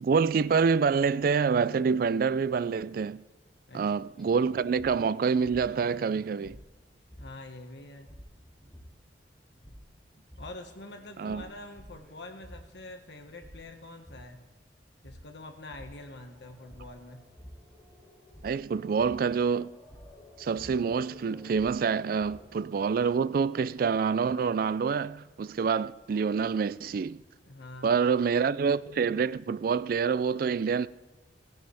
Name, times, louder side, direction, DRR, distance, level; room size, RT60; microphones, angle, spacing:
voice 1, 0.0-3.2 3.7-6.6 11.2-11.4 18.4-19.7 20.4-27.2 27.8-30.9, right 5 dB, 55° right, 0.3 m, -27 dB
sound 1, 4.2-22.4, equal, 5° left, 3.3 m, -52 dB
voice 2, 7.2-8.1 10.4-14.4 15.0-17.3 27.4-27.9, left 2 dB, 75° left, 1.6 m, -45 dB
17.0 x 10.0 x 3.5 m
head